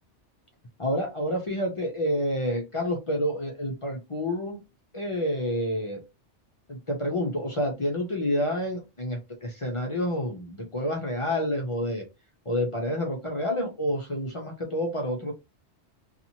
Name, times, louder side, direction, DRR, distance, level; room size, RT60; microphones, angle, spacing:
voice 1, 0.8-4.6 4.9-6.0 6.7-12.0 12.5-15.3, equal, 40° left, 1 dB, 0.5 m, -28 dB
2.8 x 2.4 x 2.7 m, 0.24 s
omnidirectional pair, 1.2 m